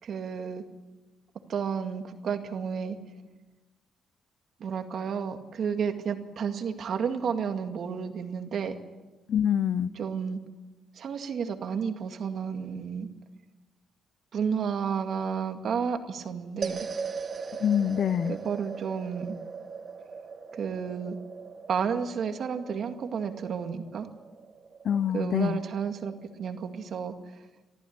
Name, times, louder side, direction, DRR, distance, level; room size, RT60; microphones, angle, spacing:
voice 1, 0.0-0.6 1.5-3.0 4.6-8.8 10.0-10.4 11.0-13.1 14.3-16.9 18.3-19.4 20.5-21.2 21.7-24.1 25.1-26.1 26.4-27.1, right 6 dB, 60° right, 2.1 m, -31 dB
voice 2, 9.3-9.9 17.6-18.4 24.8-25.6, left 9 dB, 60° left, 0.7 m, -25 dB
sound 1, 16.6-27.0, right 5 dB, 40° right, 1.8 m, -40 dB
24.5 x 14.0 x 8.7 m
cardioid pair, 90°, 0 cm